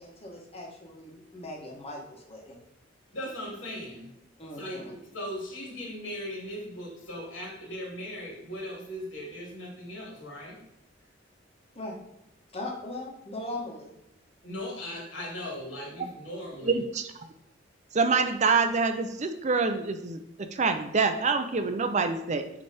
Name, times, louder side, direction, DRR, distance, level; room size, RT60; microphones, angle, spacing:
voice 1, 0.0-2.6 4.4-4.8 11.7-12.0 12.5-13.9, left 2 dB, 30° left, -1 dB, 1.5 m, -39 dB
voice 2, 3.1-4.1 4.6-10.6 14.4-16.8, left 1 dB, 80° left, -2 dB, 2.6 m, -38 dB
voice 3, 16.6-17.0 17.9-22.5, right 4 dB, 40° right, 7 dB, 0.6 m, -26 dB
8.1 x 3.3 x 4.2 m, 0.85 s
head